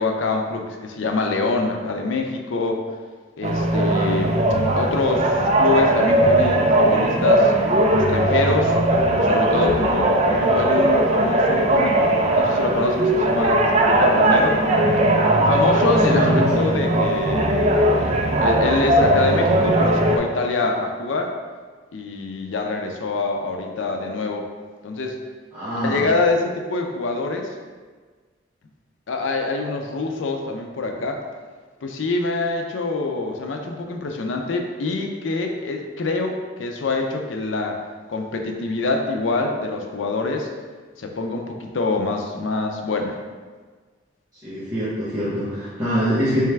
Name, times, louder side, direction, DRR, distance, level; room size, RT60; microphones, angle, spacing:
voice 1, 0.0-2.8 3.4-4.4 4.8-7.5 7.9-8.8 9.2-12.0 12.3-14.6 15.5-21.4 21.9-24.5 24.8-25.2 25.8-27.6 29.1-31.2 31.8-37.8 38.1-40.5 41.0-43.2, left 3 dB, 85° left, 3 dB, 0.5 m, -25 dB
sound 1, 3.4-20.2, right 1 dB, 35° right, 0.4 m, -19 dB
voice 2, 15.9-16.7 25.5-26.1 44.4-46.4, equal, 20° right, -13 dB, 0.9 m, -24 dB
3.4 x 3.2 x 3.3 m, 1.5 s
head